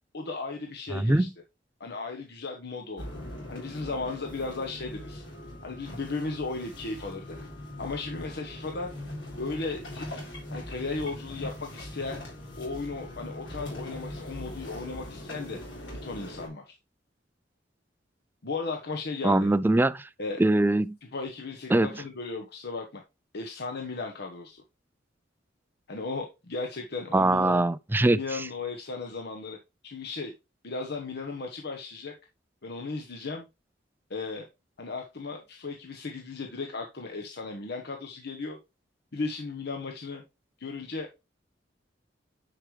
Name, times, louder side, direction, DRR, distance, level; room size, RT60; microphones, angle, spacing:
voice 1, 0.1-1.3 1.8-3.1 3.5-5.2 5.6-7.3 7.8-8.9 9.4-10.1 10.5-12.2 12.6-15.6 16.0-16.7 18.4-19.5 20.2-20.4 21.1-23.0 23.3-24.6 25.9-27.7 28.1-29.6 29.8-30.3 30.6-32.1 32.6-33.5 34.1-34.5 34.8-38.6 39.1-40.2 40.6-41.2, left 3 dB, 60° left, 1.1 m, -35 dB
voice 2, 0.9-1.3 19.2-20.1 20.4-21.0 21.7-21.9 27.1-28.4, right 2 dB, 10° right, 0.3 m, -22 dB
sound 1, 3.0-16.5, left 1 dB, 75° left, 3.9 m, -41 dB
9.9 x 4.9 x 3.2 m
head